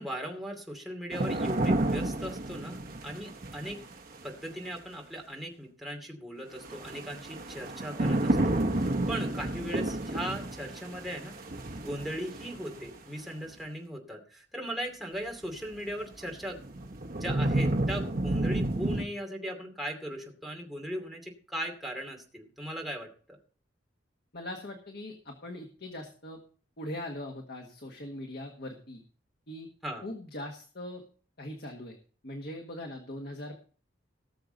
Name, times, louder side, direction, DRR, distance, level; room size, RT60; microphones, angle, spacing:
voice 1, 0.0-3.8 4.2-8.6 8.8-11.4 11.8-16.6 17.2-23.4 29.8-30.0, equal, ahead, 0 dB, 2.6 m, -38 dB
sound 1, 1.1-4.2 6.6-12.9 15.5-15.6 16.2-19.0, right 1 dB, 50° right, 1.1 m, -31 dB
voice 2, 24.3-26.4 26.8-29.0 29.5-29.7 30.0-31.0 31.4-32.0 32.2-33.6, left 1 dB, 55° left, 2 dB, 1.6 m, -41 dB
18.5 x 7.0 x 3.9 m, 0.42 s
head